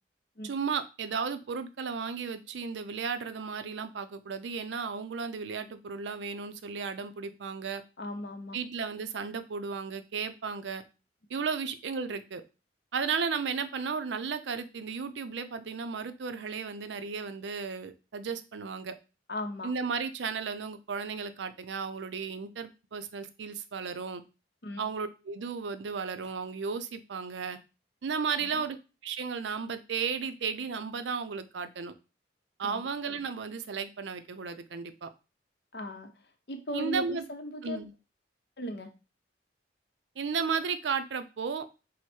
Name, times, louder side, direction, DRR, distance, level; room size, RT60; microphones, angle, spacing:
voice 1, 0.4-7.8 8.5-10.8 11.3-12.4 12.9-18.9 19.6-24.2 24.8-27.6 28.0-28.8 29.0-31.9 32.6-35.1 36.7-37.3 37.6-37.9 40.2-41.7, right 5 dB, 75° right, 10 dB, 0.5 m, -34 dB
voice 2, 8.0-8.6 19.3-19.7 24.6-24.8 28.4-28.6 32.6-32.9 35.7-36.1 36.5-37.8 38.6-38.9, left 1 dB, 60° left, 5 dB, 0.7 m, -37 dB
4.6 x 2.1 x 4.3 m, 0.30 s
head